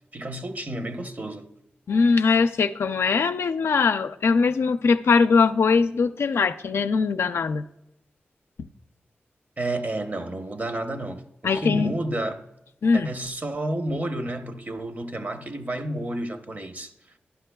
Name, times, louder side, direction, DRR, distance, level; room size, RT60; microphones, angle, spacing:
voice 1, 0.1-1.5 9.6-12.4 12.9-16.9, right 1 dB, 40° right, 0.8 m, -31 dB
voice 2, 1.9-7.6 11.4-11.9 12.8-13.1, left 4 dB, 80° left, 0.4 m, -21 dB
12.5 x 11.0 x 2.2 m
cardioid pair, 50°, 4 cm